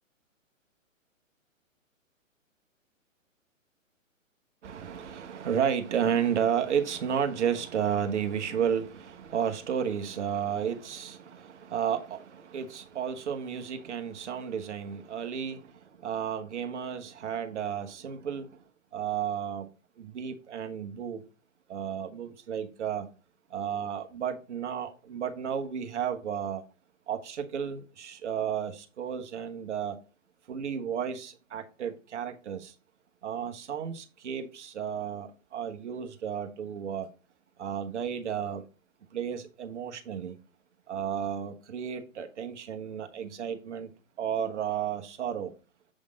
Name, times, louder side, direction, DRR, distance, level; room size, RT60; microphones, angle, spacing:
voice 1, 4.6-18.6 18.9-19.7 20.0-21.2 21.7-23.1 23.5-26.6 27.1-30.0 30.5-32.7 33.2-37.1 37.6-38.6 39.1-40.4 40.9-43.9 44.2-45.5, right 8 dB, 60° right, 1.3 m, -32 dB
7.6 x 3.6 x 5.0 m
figure-of-eight pair, 130°, 40 cm